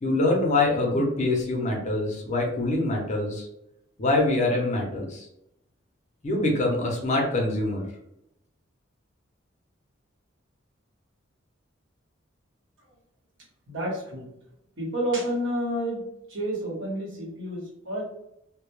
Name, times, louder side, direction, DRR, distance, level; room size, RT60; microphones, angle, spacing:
voice 1, 0.0-3.5 4.0-5.3 6.2-7.8, left 2 dB, 35° left, -1 dB, 0.5 m, -24 dB
voice 2, 13.7-14.3 14.8-16.0 16.3-18.0, right 1 dB, 60° right, -4 dB, 1.0 m, -29 dB
2.1 x 2.0 x 3.0 m, 0.82 s
head